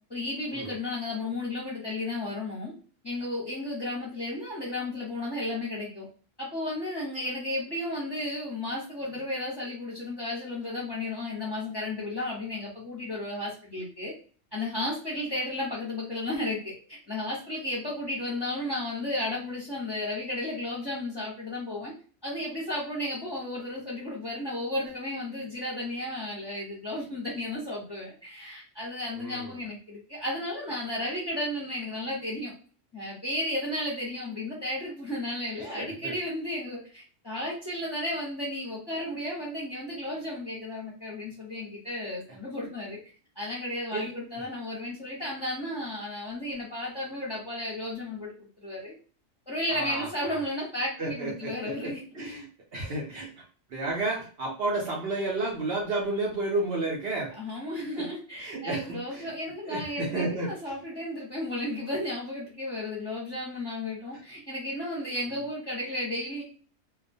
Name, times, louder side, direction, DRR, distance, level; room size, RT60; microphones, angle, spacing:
voice 1, 0.1-2.7 3.0-6.1 6.4-14.1 14.5-21.9 22.2-32.5 32.9-43.0 43.4-48.9 49.5-52.2 57.4-66.4, left 1 dB, 25° left, -5 dB, 0.7 m, -33 dB
voice 2, 29.2-29.5 35.6-36.1 43.9-44.1 49.7-50.4 51.0-52.5 52.7-53.3 53.7-57.3 57.7-58.1 58.4-59.3 59.7-60.5, right 2 dB, 60° right, -2 dB, 0.7 m, -32 dB
2.2 x 2.2 x 2.5 m, 0.40 s
omnidirectional pair, 1.3 m